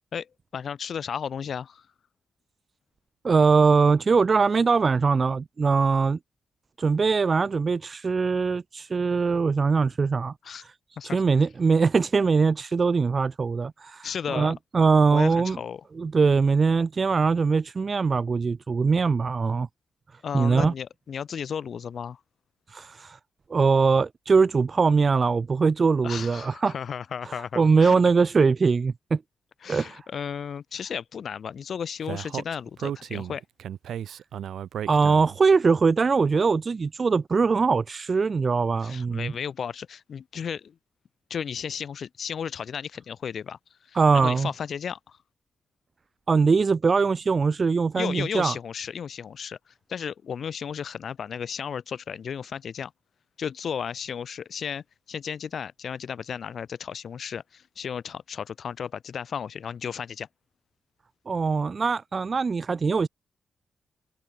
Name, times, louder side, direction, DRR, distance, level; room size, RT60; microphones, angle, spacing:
voice 1, 0.1-1.9 10.4-10.6 11.0-11.2 14.0-14.5 15.1-15.8 20.2-22.2 26.0-28.0 29.6-33.4 38.8-40.7 41.3-45.2 47.9-52.9 53.4-60.3, left 7 dB, 55° left, 0.7 m, -34 dB
voice 2, 3.2-6.2 6.8-10.3 10.6-10.7 11.0-15.6 16.0-19.7 20.3-20.7 22.7-23.2 23.5-26.7 27.3-29.2 29.7-30.0 34.9-39.3 43.9-44.5 46.3-48.5 61.3-63.1, right 4 dB, 35° right, 0.7 m, -22 dB
Speech, 32.1-35.5, right 10 dB, 80° right, 0.6 m, -34 dB
wide cardioid pair, 130°, 0 cm